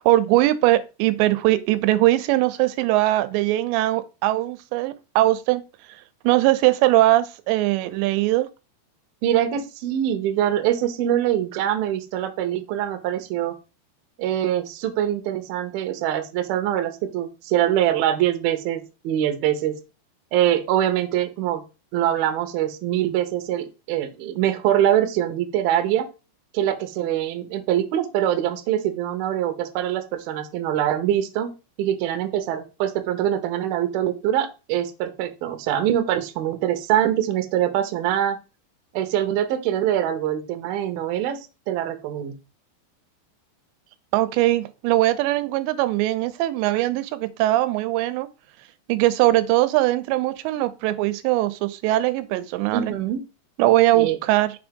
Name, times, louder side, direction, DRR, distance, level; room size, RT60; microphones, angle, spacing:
voice 1, 0.0-5.6 6.2-8.5 44.1-48.3 48.9-52.9 53.6-54.5, right 16 dB, 90° right, 2.8 m, -20 dB
voice 2, 9.2-13.5 14.2-19.8 20.3-21.6 21.9-26.1 26.5-31.5 31.8-38.4 38.9-41.4 41.7-42.4 52.7-53.2 54.0-54.2, right 11 dB, 75° right, 2.5 m, -23 dB
6.4 x 3.5 x 5.2 m
omnidirectional pair, 4.9 m